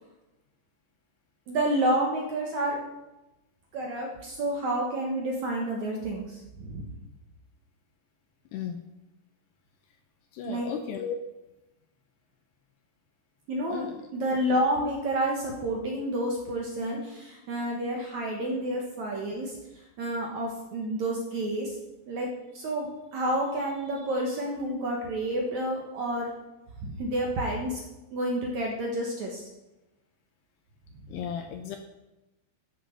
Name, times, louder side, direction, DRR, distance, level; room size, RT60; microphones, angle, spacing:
voice 1, 1.5-2.8 3.7-6.9 10.4-10.7 13.5-13.9 14.1-19.6 20.0-21.8 22.1-22.3 22.5-26.3 26.8-27.8 28.1-29.4, right 1 dB, 70° right, -1 dB, 1.7 m, -29 dB
voice 2, 10.3-11.2 13.7-14.0 24.2-24.4 31.1-31.8, left 8 dB, 85° left, 6 dB, 2.5 m, -35 dB
14.0 x 6.7 x 6.4 m, 0.99 s
omnidirectional pair, 5.4 m